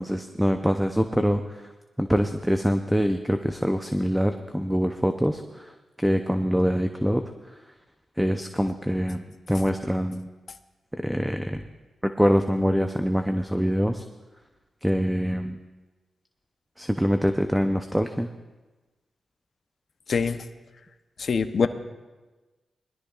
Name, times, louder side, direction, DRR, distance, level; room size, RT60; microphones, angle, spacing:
voice 1, 0.0-1.6 2.0-7.2 8.2-10.3 11.0-11.6 12.0-14.0 14.8-15.6 16.8-18.3, equal, 5° right, 7 dB, 0.7 m, -24 dB
voice 2, 20.1-20.4 21.2-21.7, left 5 dB, 65° left, 10 dB, 0.8 m, -24 dB
20.5 x 13.0 x 2.4 m, 1.2 s
cardioid pair, 55°, 0 cm